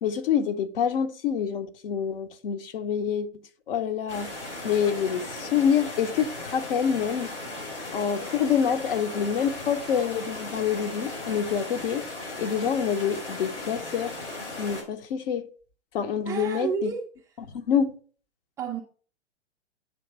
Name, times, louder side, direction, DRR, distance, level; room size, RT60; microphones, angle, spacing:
voice 1, 0.0-3.3 3.7-4.3 4.6-7.3 7.9-12.0 12.4-14.2 14.6-15.5 15.9-16.9 17.5-17.9, left 8 dB, 55° left, 0.9 m, -26 dB
sound 1, 4.1-14.8, left 2 dB, 80° left, 4.1 m, -37 dB
voice 2, 16.3-17.0 18.6-18.8, right 7 dB, 10° right, 0.3 m, -30 dB
9.2 x 3.3 x 4.4 m
figure-of-eight pair, 110°, 34 cm